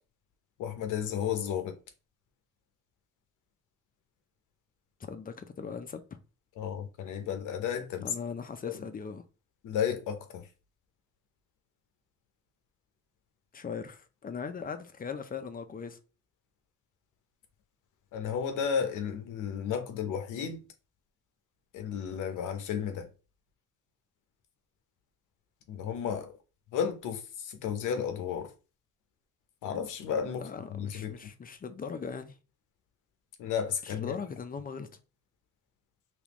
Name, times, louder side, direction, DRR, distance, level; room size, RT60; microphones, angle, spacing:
voice 1, 0.6-1.8 6.6-8.1 8.6-8.8 9.6-10.5 18.1-20.6 21.7-23.1 25.7-26.3 26.7-28.5 29.6-31.1 33.4-34.2, left 8 dB, 85° left, 0.8 m, -33 dB
voice 2, 5.0-6.0 8.0-9.2 13.5-16.0 30.4-32.4 33.8-34.9, left 6 dB, 30° left, 0.5 m, -39 dB
3.5 x 3.0 x 3.0 m
cardioid pair, 90°, 30 cm